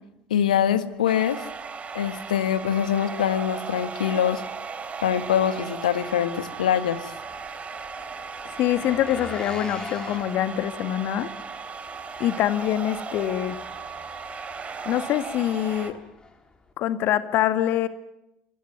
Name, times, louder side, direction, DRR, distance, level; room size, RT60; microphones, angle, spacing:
voice 1, 0.3-1.4 2.0-4.4 5.0-7.1, left 9 dB, 75° left, 12 dB, 1.6 m, -24 dB
Engine, 0.9-16.7, left 3 dB, 20° left, 3.8 m, -45 dB
sound 1, 1.1-15.9, right 5 dB, 30° right, 3.2 m, -36 dB
voice 2, 8.6-11.3 12.2-13.6 14.9-16.0 16.8-17.9, left 12 dB, 50° left, 11 dB, 1.9 m, -24 dB
25.5 x 20.0 x 9.5 m, 0.84 s
figure-of-eight pair, 65°, 4 cm